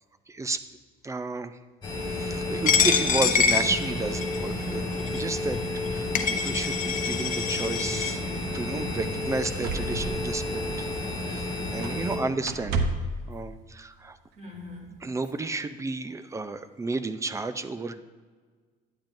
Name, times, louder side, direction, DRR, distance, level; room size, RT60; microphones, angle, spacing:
voice 1, 0.3-0.6 1.0-1.6 2.1-4.8 5.1-5.6 5.9-8.2 8.5-10.9 11.2-12.9 13.3-14.2 15.0-18.0, right 3 dB, 20° right, 12 dB, 0.5 m, -32 dB
sound 1, 1.8-12.2, left 2 dB, 25° left, 2.7 m, -31 dB
Coin (dropping), 2.7-4.4 5.1-5.2 5.9-6.0 6.1-8.1, left 6 dB, 50° left, 0.8 m, -25 dB
sound 2, 8.9-9.0 9.4-11.4 11.8-12.1 12.4-13.2 14.3-14.4, right 3 dB, 80° right, 0.8 m, -32 dB
voice 2, 11.8-12.2 14.4-14.9 15.3-15.4 16.3-16.4, left 2 dB, 45° right, -1 dB, 2.7 m, -44 dB
10.5 x 8.8 x 2.6 m, 1.5 s
cardioid pair, 110°, 17 cm